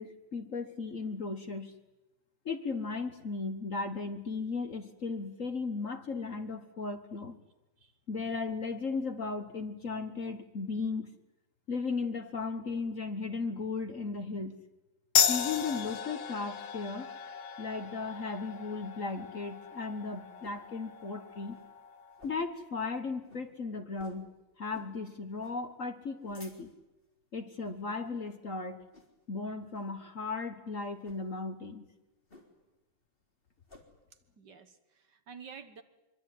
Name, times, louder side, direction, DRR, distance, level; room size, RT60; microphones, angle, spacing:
voice 1, 0.0-1.7 2.4-7.4 8.1-11.1 11.7-14.6 15.3-17.1 17.6-21.6 22.2-24.3 24.6-26.7 27.3-28.8 29.3-31.8, left 4 dB, 40° left, 8 dB, 1.5 m, -36 dB
sound 1, 15.2-22.2, left 8 dB, 80° left, 2.0 m, -34 dB
sound 2, 19.5-20.7 21.1-21.2 21.4-21.7 22.1-22.6 22.9-23.0 23.3-23.5 24.0-24.3 24.7-25.0 25.4-25.6 26.0-26.9 27.5-27.8 28.2-28.5 28.9-29.3 29.7-30.0 30.9-31.2 32.3-32.8 33.1-33.9, left 2 dB, 25° left, 3.9 m, -56 dB
voice 2, 34.4-35.8, right 6 dB, 55° right, 9 dB, 1.9 m, -50 dB
24.5 x 23.5 x 9.4 m, 1.0 s
omnidirectional pair, 2.3 m